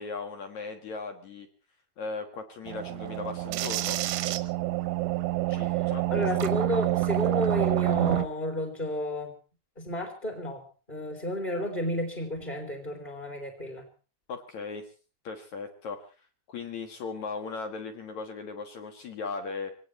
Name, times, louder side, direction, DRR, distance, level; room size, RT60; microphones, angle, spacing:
voice 1, 0.0-1.5 2.0-4.0 5.5-6.5 14.3-14.9 15.2-16.1 16.5-19.7, left 4 dB, 60° left, 5 dB, 2.0 m, -37 dB
sound 1, 2.7-8.3, right 17 dB, 85° right, 3.4 m, -27 dB
voice 2, 5.5-9.3 9.8-13.8, left 1 dB, 15° left, 2 dB, 2.3 m, -32 dB
24.5 x 18.5 x 3.2 m, 0.36 s
omnidirectional pair, 5.4 m